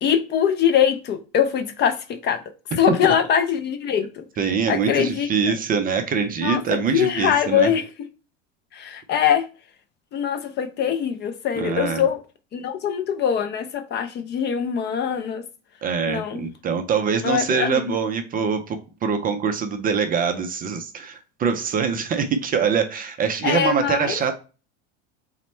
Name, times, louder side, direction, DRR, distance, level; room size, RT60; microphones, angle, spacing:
voice 1, 0.0-2.4 2.7-4.2 4.7-5.5 6.4-7.8 8.7-9.5 10.1-12.2 12.5-15.4 16.1-16.4 17.2-17.8 23.4-24.2, left 8 dB, 30° left, 0.4 m, -22 dB
voice 2, 4.4-7.7 11.6-12.0 15.8-24.4, right 6 dB, 25° right, 0.4 m, -24 dB
4.1 x 2.1 x 4.1 m
supercardioid pair, 105°, 34 cm